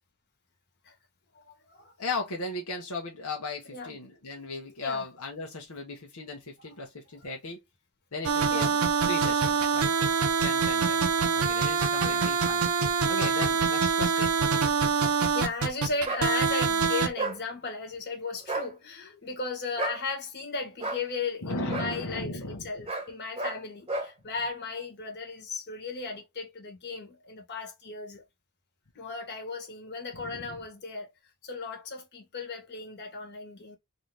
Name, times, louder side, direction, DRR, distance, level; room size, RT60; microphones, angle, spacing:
voice 1, 1.3-1.9 3.7-4.0 4.8-5.0 8.5-8.8 12.0-12.3 15.0-28.2 28.9-31.1 31.4-33.8, left 4 dB, 50° left, 1.5 m, -36 dB
voice 2, 2.0-7.6 8.1-8.7 9.1-9.9 10.4-12.6 13.1-14.4 21.4-22.7 30.1-30.6, left 3 dB, 80° left, 1.1 m, -36 dB
sound 1, 8.2-17.1, right 5 dB, 70° right, 0.7 m, -25 dB
sound 2, 16.0-16.3 17.2-17.4 18.4-18.7 19.8-20.0 20.8-21.0 21.7-21.9 22.9-23.1 23.4-23.6 23.9-24.1, right 2 dB, 25° right, 1.0 m, -32 dB
3.9 x 2.8 x 3.3 m
head